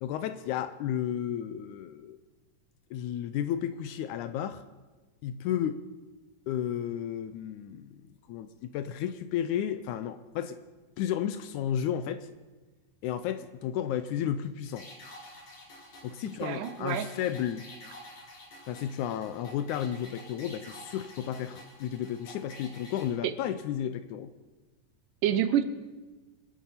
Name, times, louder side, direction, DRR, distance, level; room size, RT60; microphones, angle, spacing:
voice 1, 0.0-2.2 2.9-4.6 5.2-5.8 6.5-8.0 8.3-8.5 8.7-10.6 11.0-12.3 13.0-14.9 16.0-17.7 18.7-24.3, left 10 dB, 75° left, 12 dB, 1.9 m, -33 dB
sound 1, 14.7-23.1, left 1 dB, 50° left, 3.6 m, -49 dB
voice 2, 16.4-17.1 23.2-23.3 25.2-25.6, right 10 dB, 80° right, 12 dB, 2.3 m, -27 dB
25.0 x 8.5 x 5.7 m, 1.2 s
omnidirectional pair, 3.8 m